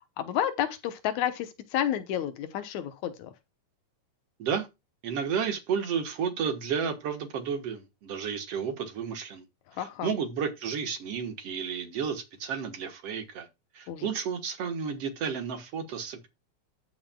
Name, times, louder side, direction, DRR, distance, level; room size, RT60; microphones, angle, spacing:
voice 1, 0.0-3.3 9.7-10.1 13.9-14.1, left 10 dB, 80° left, 2.3 m, -31 dB
voice 2, 5.0-9.4 9.7-13.5 13.7-16.3, right 7 dB, 60° right, 2.2 m, -32 dB
14.0 x 5.6 x 2.3 m
omnidirectional pair, 3.3 m